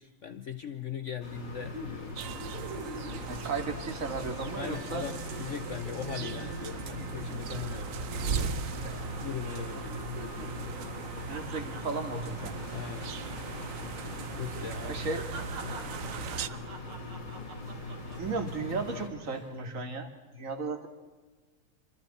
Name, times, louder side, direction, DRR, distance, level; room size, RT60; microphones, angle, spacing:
voice 1, 0.0-2.2 4.6-8.5 9.1-10.1 12.7-13.1 14.3-15.1 15.6-16.0 16.4-16.6, left 8 dB, 75° left, 10 dB, 0.7 m, -40 dB
sound 1, 1.2-19.1, left 2 dB, 55° left, 6.1 m, -41 dB
sound 2, 1.7-4.3 4.6-4.8 5.1-8.5 8.8-9.3 9.6-13.6 13.9-14.1 14.5-18.6 19.1-19.5, right 2 dB, 80° right, 3.5 m, -46 dB
sound 3, 2.2-16.5, right 7 dB, 65° right, 0.8 m, -39 dB
voice 2, 3.3-5.1 9.7-9.8 11.3-12.6 14.8-15.3 18.2-20.9, right 4 dB, 40° right, 5 dB, 2.5 m, -35 dB
27.0 x 26.0 x 4.3 m, 1.3 s
omnidirectional pair, 2.3 m